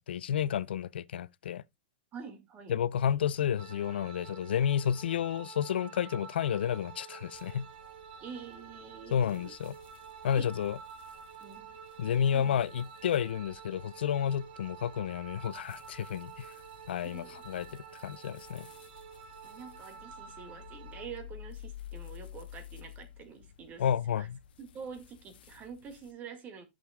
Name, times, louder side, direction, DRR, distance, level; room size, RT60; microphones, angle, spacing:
voice 1, 0.0-1.6 2.7-7.7 9.1-9.7 10.2-10.8 12.0-16.5 16.9-17.7 18.0-18.7 23.8-24.4, left 9 dB, 90° left, 0.4 m, -31 dB
voice 2, 2.1-2.8 8.2-9.5 10.3-10.5 11.4-11.8 12.3-12.6 17.0-17.7 19.4-23.9 24.2-24.3 24.6-26.6, right 6 dB, 30° right, 1.9 m, -46 dB
sound 1, 3.6-21.1, right 7 dB, 65° right, 1.4 m, -49 dB
sound 2, 7.3-26.1, left 11 dB, 75° left, 0.8 m, -53 dB
11.5 x 6.3 x 2.2 m
hypercardioid pair, 135°, 5 cm